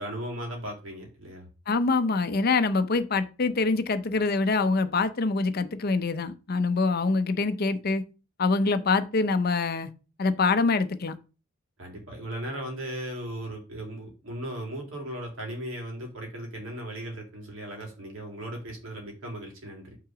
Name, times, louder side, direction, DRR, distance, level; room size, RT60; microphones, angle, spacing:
voice 1, 0.0-1.5 11.8-20.0, right 1 dB, 80° right, 2.3 m, -37 dB
voice 2, 1.7-8.0 8.4-9.9 10.2-11.1, left 3 dB, 50° left, 0.6 m, -25 dB
5.8 x 3.8 x 4.9 m
head